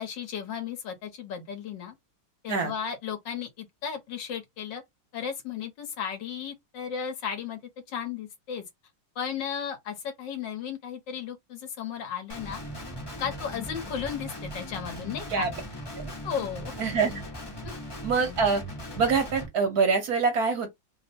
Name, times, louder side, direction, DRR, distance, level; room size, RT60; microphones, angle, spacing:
voice 1, 0.0-2.0 2.4-4.8 5.1-7.6 7.9-8.6 9.2-12.6 13.2-15.5 16.2-16.7 17.6-17.7, left 7 dB, 70° left, 1.6 m, -35 dB
Guitar, 12.3-19.5, equal, 20° left, 0.7 m, -39 dB
voice 2, 16.8-17.1 18.0-18.6 19.0-20.7, right 5 dB, 55° right, 1.3 m, -25 dB
3.5 x 2.1 x 4.1 m
omnidirectional pair, 2.1 m